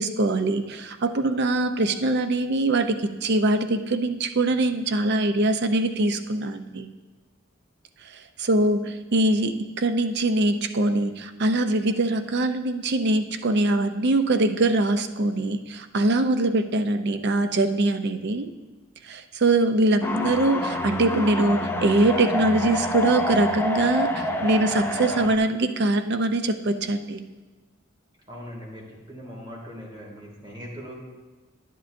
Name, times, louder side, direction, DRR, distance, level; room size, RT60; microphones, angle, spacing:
voice 1, 0.0-6.9 8.4-18.5 19.1-27.2, right 2 dB, 55° right, 8 dB, 0.5 m, -23 dB
sound 1, 20.0-25.3, left 1 dB, 10° left, 0.5 m, -27 dB
voice 2, 28.3-30.9, equal, 25° right, -3 dB, 2.3 m, -40 dB
10.5 x 10.0 x 2.6 m, 1.3 s
head